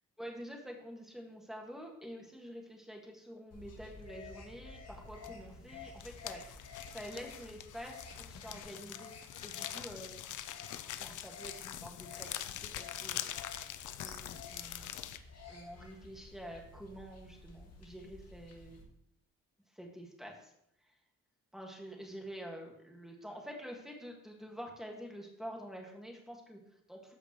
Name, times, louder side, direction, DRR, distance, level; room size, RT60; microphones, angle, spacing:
voice 1, 0.2-9.1 9.4-10.3 11.0-13.2 13.5-13.6 14.0-15.0 15.5-18.9 19.7-20.5 20.8-21.0 21.5-27.2, equal, ahead, 0 dB, 1.8 m, -48 dB
sound 1, 3.5-18.8, left 4 dB, 55° left, 2.0 m, -53 dB
sound 2, 5.2-5.5 5.8-15.2, left 11 dB, 80° left, 0.5 m, -44 dB
14.0 x 5.1 x 3.1 m, 0.76 s
cardioid pair, 105°, 30 cm